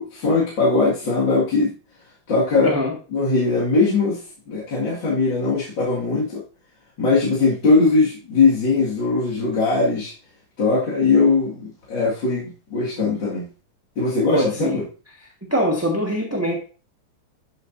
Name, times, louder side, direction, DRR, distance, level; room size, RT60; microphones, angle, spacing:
voice 1, 0.0-1.7 2.3-2.7 3.1-4.2 4.5-6.4 7.0-10.1 10.6-13.5 14.0-14.8, left 3 dB, 60° left, -6 dB, 2.7 m, -20 dB
voice 2, 2.6-2.9 14.3-14.8 15.5-16.6, equal, 10° right, -2 dB, 1.3 m, -22 dB
12.5 x 6.9 x 2.6 m, 0.37 s
omnidirectional pair, 2.4 m